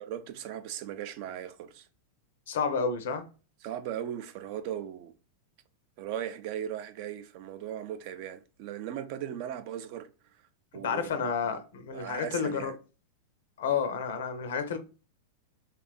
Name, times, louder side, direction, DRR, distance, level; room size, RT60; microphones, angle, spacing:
voice 1, 0.1-1.9 3.6-5.1 6.0-10.1 10.7-11.6 11.9-12.8, right 10 dB, 50° right, 0.4 m, -38 dB
voice 2, 2.5-3.3 10.7-12.7 13.6-14.8, left 6 dB, 70° left, 0.5 m, -30 dB
2.8 x 2.3 x 2.2 m
hypercardioid pair, 95°, 0 cm